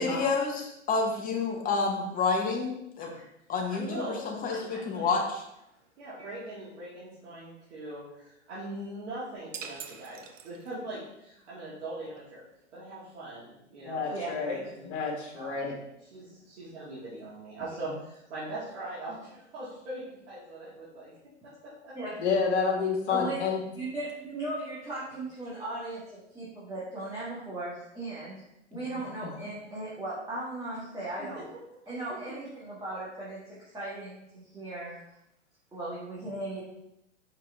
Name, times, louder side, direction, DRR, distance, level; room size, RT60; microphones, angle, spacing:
voice 1, 0.0-3.1 3.5-5.4, left 4 dB, 25° left, 1 dB, 1.1 m, -29 dB
voice 2, 3.7-5.2 6.0-12.4 12.7-14.2 14.4-14.9 15.3-21.2 21.4-22.0 31.2-31.8, right 2 dB, 65° right, -9 dB, 2.3 m, -41 dB
sound 1, 9.5-11.0, right 7 dB, 85° right, 0.7 m, -43 dB
voice 3, 13.8-14.6 14.9-15.7 22.2-23.6, left 5 dB, 65° left, -1 dB, 2.0 m, -29 dB
voice 4, 23.1-23.5 23.8-28.4 28.7-31.4 31.9-35.0 35.7-36.6, right 2 dB, 10° right, -8 dB, 1.6 m, -37 dB
5.6 x 4.7 x 3.6 m, 0.82 s
hypercardioid pair, 115°, 36 cm